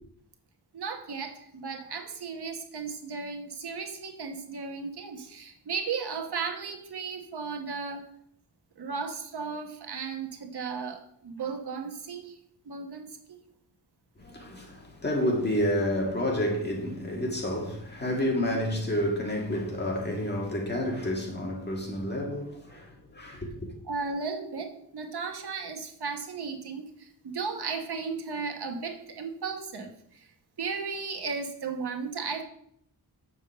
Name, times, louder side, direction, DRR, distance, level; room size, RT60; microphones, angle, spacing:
voice 1, 0.7-8.0 8.8-12.4 12.7-13.4 23.9-30.2 30.6-32.4, right 5 dB, 70° right, 1.2 m, -35 dB
voice 2, 14.2-23.7, equal, 25° left, 1.8 m, -29 dB
7.0 x 5.2 x 6.7 m
wide cardioid pair, 140°, 41 cm